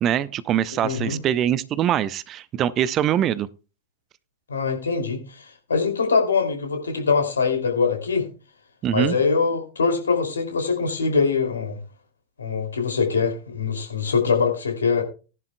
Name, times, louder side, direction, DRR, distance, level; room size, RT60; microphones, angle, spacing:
voice 1, 0.0-3.5 8.8-9.2, right 10 dB, 30° right, 20 dB, 0.5 m, -23 dB
voice 2, 0.8-1.2 4.5-8.3 8.9-11.8 12.4-15.0, left 5 dB, 70° left, 4 dB, 2.6 m, -23 dB
18.0 x 11.0 x 2.2 m, 0.32 s
figure-of-eight pair, 90°, 0 cm